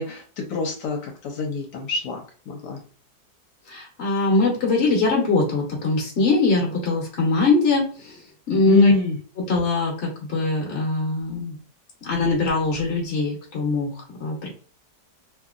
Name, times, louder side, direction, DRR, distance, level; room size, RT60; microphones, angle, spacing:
voice 1, 0.0-2.8 8.7-9.2, left 6 dB, 80° left, 2 dB, 1.2 m, -26 dB
voice 2, 3.7-8.9 9.4-11.5 12.0-14.5, left 3 dB, 50° left, -1 dB, 1.0 m, -22 dB
2.9 x 2.7 x 2.4 m, 0.42 s
omnidirectional pair, 1.8 m